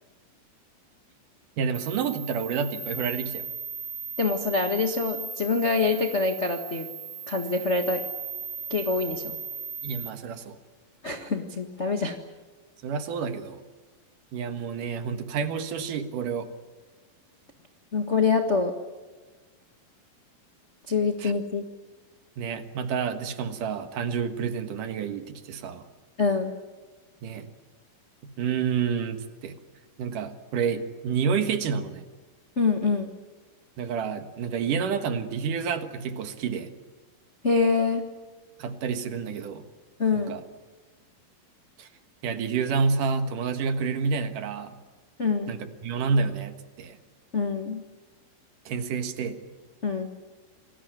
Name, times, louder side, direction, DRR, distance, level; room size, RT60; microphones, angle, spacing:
voice 1, 1.6-3.5 9.8-10.6 12.8-13.6 14.3-16.5 21.2-21.3 22.4-25.8 27.2-27.5 28.2-29.6 30.0-32.1 33.8-36.7 38.6-39.7 40.1-40.4 41.8-41.9 42.2-44.8 45.5-47.0 48.7-49.4, right 6 dB, 65° right, 9 dB, 2.9 m, -29 dB
sound 1, 1.7-10.1, right 5 dB, 35° right, 4.2 m, -37 dB
voice 2, 4.2-6.9 7.3-8.0 8.7-9.4 11.0-12.1 17.9-18.7 20.9-21.6 26.2-26.5 32.6-33.1 37.4-38.0 40.0-40.4 45.2-45.5 47.3-47.8 49.8-50.1, left 4 dB, 60° left, 4 dB, 0.7 m, -25 dB
28.0 x 19.5 x 9.3 m, 1.3 s
omnidirectional pair, 4.2 m